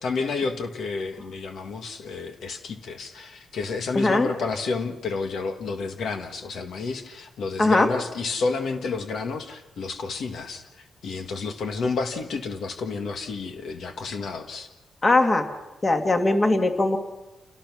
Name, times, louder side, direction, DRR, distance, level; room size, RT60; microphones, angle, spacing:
voice 1, 0.0-14.7, left 4 dB, 70° left, 5 dB, 1.8 m, -30 dB
voice 2, 3.9-4.3 7.6-7.9 15.0-15.5 15.8-17.0, left 2 dB, 25° left, 5 dB, 2.0 m, -20 dB
28.5 x 18.0 x 6.3 m, 1.1 s
cardioid pair, 130°, 0 cm